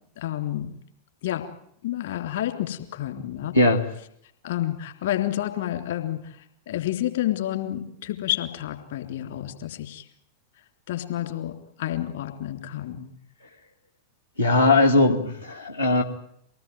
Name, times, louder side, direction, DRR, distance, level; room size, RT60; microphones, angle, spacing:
voice 1, 0.2-0.7 1.2-1.5 1.8-3.5 4.4-10.1 10.9-11.5 11.8-13.1, left 13 dB, 55° left, 6 dB, 3.5 m, -29 dB
voice 2, 14.4-16.0, left 2 dB, 80° left, 0 dB, 2.6 m, -19 dB
25.0 x 19.0 x 9.3 m, 0.71 s
figure-of-eight pair, 90°, 0 cm